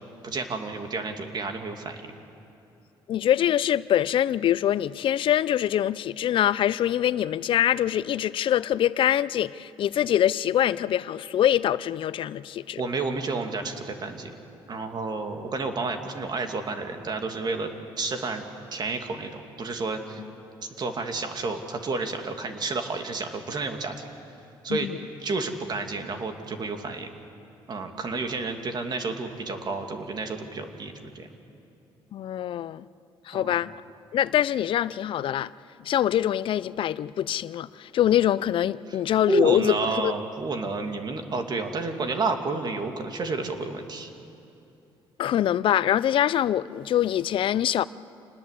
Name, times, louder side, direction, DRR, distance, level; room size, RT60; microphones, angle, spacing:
voice 1, 0.2-2.0 12.8-14.4 14.7-17.7 18.0-20.2 20.8-24.0 24.6-24.9 25.2-27.1 27.7-31.3 33.3-33.6 39.3-44.1, right 3 dB, 45° right, 2.5 m, -30 dB
voice 2, 3.1-12.8 20.2-20.3 24.7-25.0 32.1-32.9 33.3-33.7 34.1-35.5 35.8-40.1 45.2-47.8, left 11 dB, 60° left, 0.5 m, -24 dB
27.5 x 20.0 x 8.4 m
cardioid pair, 85°, 10 cm